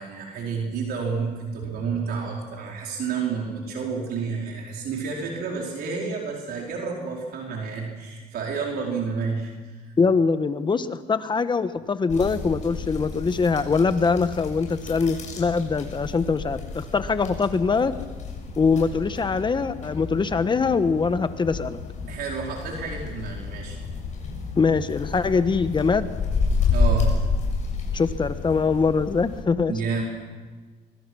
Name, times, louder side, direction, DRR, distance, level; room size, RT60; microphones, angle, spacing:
voice 1, 0.0-9.9 22.1-23.8 26.7-27.1 29.7-30.0, right 5 dB, 65° right, -1 dB, 4.6 m, -30 dB
voice 2, 10.0-17.9 18.6-21.8 24.6-26.1 27.9-29.7, left 4 dB, 25° left, 11 dB, 1.2 m, -23 dB
sound 1, 12.1-29.4, left 4 dB, 45° left, 7.1 m, -30 dB
24.0 x 23.0 x 6.4 m, 1.3 s
cardioid pair, 110°, 17 cm